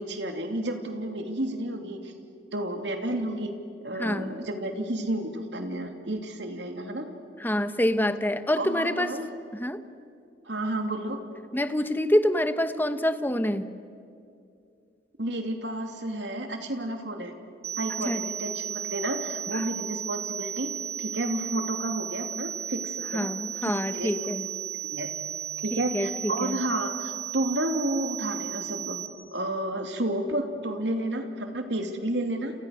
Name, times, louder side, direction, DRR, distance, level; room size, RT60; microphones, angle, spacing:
voice 1, 0.0-2.1 2.5-3.5 3.8-7.1 8.6-9.3 10.5-11.2 15.2-17.3 17.8-20.7 21.0-23.3 23.6-24.1 24.9-25.1 25.6-29.0 29.3-32.5, right 1 dB, 75° right, 5 dB, 2.8 m, -31 dB
voice 2, 4.0-4.4 7.4-9.1 9.5-9.8 11.5-13.7 18.0-18.3 19.5-19.6 23.1-24.5 25.7-26.6, left 1 dB, 10° left, 10 dB, 1.0 m, -26 dB
sound 1, 17.6-29.1, right 9 dB, 35° right, 2.3 m, -35 dB
30.0 x 28.5 x 6.5 m, 2.5 s
head